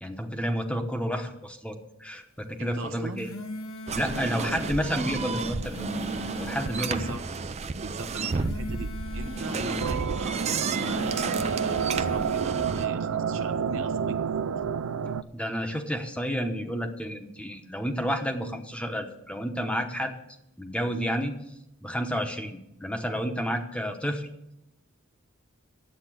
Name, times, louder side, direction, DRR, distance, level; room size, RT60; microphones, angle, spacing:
voice 1, 0.0-3.3 3.9-5.7 6.4-7.0 7.6-7.7 15.3-20.2 20.6-21.3 21.8-24.3, equal, 5° left, 5 dB, 1.0 m, -30 dB
voice 2, 2.6-3.3 4.2-4.8 6.7-7.2 7.7-14.5, right 2 dB, 65° right, 8 dB, 1.0 m, -39 dB
sound 1, 3.0-4.8 5.5-7.3 8.1-9.9 10.6-12.3, left 1 dB, 75° left, 1.1 m, -39 dB
sound 2, 3.9-12.9, right 4 dB, 30° right, 0.5 m, -32 dB
sound 3, 9.8-15.2, right 7 dB, 85° right, 0.4 m, -29 dB
10.0 x 8.0 x 7.7 m, 0.83 s
head